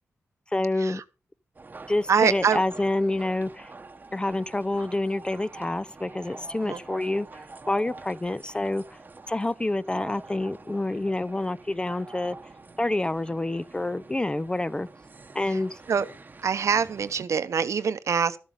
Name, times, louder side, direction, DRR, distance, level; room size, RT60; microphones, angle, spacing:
voice 1, 0.5-1.0 1.9-3.7 4.1-9.0 9.3-12.4 12.8-14.9 15.3-15.8, left 2 dB, 15° left, 0.4 m, -28 dB
sound 1, 1.5-17.2, right 3 dB, 35° right, 0.9 m, -46 dB
voice 2, 2.1-2.6 6.6-6.8 15.5-15.6 15.9-16.1 16.4-18.4, right 6 dB, 70° right, 0.8 m, -24 dB
12.5 x 7.3 x 5.3 m
cardioid pair, 75°, 5 cm